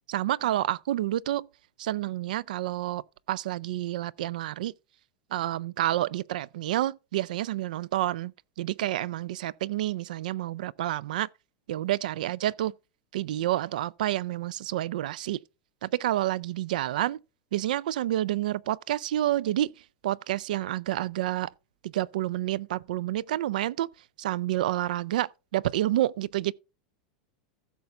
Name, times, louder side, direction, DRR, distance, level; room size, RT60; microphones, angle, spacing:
voice 1, 0.1-1.5 1.8-3.0 3.3-4.7 5.3-8.3 8.6-11.3 11.7-12.7 13.1-15.4 15.8-17.2 17.5-19.7 20.0-21.5 21.8-23.9 24.2-26.5, right 14 dB, 85° right, 0.3 m, -29 dB
15.5 x 6.8 x 2.4 m
supercardioid pair, 160°, 4 cm